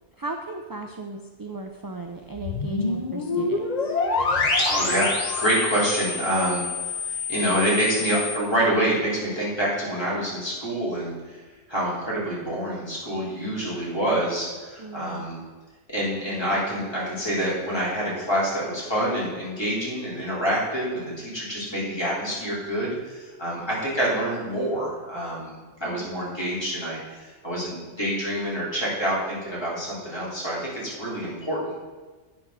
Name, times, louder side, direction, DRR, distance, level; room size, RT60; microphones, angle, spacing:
voice 1, 0.2-4.0 14.8-15.3 25.9-26.2, right 2 dB, 30° right, 3 dB, 0.4 m, -36 dB
sound 1, 2.3-8.4, left 3 dB, 40° left, 1.1 m, -27 dB
voice 2, 4.6-11.4 11.7-15.4 15.9-31.9, right 1 dB, 20° left, -8 dB, 3.5 m, -27 dB
9.0 x 6.1 x 6.2 m, 1.3 s
omnidirectional pair, 1.2 m